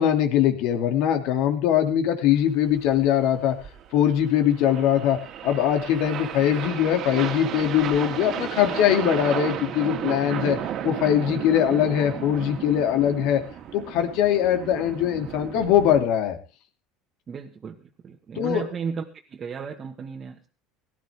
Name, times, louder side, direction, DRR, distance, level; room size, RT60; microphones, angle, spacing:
voice 1, 0.0-3.5 3.9-10.6 10.8-13.4 13.7-16.4 18.4-18.7, left 10 dB, 65° left, 6 dB, 2.6 m, -22 dB
sound 1, 2.7-16.0, right 9 dB, 50° right, 2.0 m, -34 dB
voice 2, 17.3-19.0 19.3-20.5, right 6 dB, 35° right, 2 dB, 1.6 m, -34 dB
18.0 x 13.0 x 3.6 m, 0.34 s
supercardioid pair, 110°, 0 cm